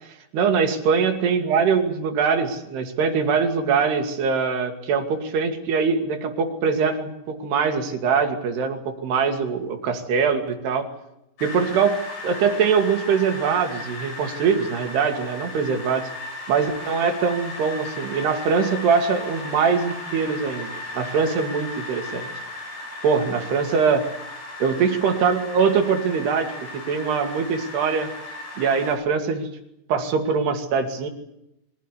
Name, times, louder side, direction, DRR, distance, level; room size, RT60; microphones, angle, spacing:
voice 1, 0.3-10.9 11.4-16.1 16.5-22.3 23.0-24.1 24.6-28.1 28.6-29.5 29.9-31.1, right 5 dB, 70° right, 4 dB, 4.5 m, -22 dB
sound 1, 11.4-29.0, left 2 dB, 70° left, 9.2 m, -36 dB
24.5 x 17.0 x 9.9 m, 0.84 s
omnidirectional pair, 4.9 m